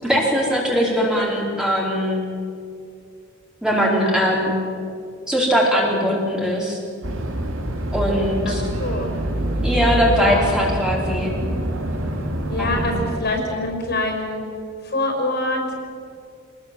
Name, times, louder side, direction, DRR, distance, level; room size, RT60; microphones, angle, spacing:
voice 1, 0.0-2.2 3.6-4.5 5.3-6.8 7.9-8.6 9.6-11.3 12.6-13.0, equal, 5° right, -3 dB, 4.5 m, -20 dB
sound 1, 7.0-13.2, right 1 dB, 70° right, 2.9 m, -25 dB
voice 2, 8.4-9.1 10.1-10.5 12.5-14.4 14.8-15.7, left 2 dB, 55° left, 3 dB, 5.6 m, -25 dB
26.0 x 20.0 x 7.8 m, 2.4 s
head